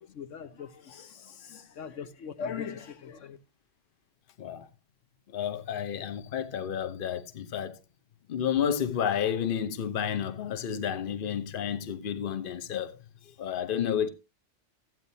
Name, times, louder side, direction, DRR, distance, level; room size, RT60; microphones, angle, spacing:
voice 1, 0.1-3.4, left 6 dB, 80° left, 1.2 m, -40 dB
voice 2, 5.3-7.8 8.3-13.0 13.2-14.1, left 8 dB, 50° left, 0.9 m, -31 dB
14.0 x 9.2 x 2.7 m
omnidirectional pair, 1.3 m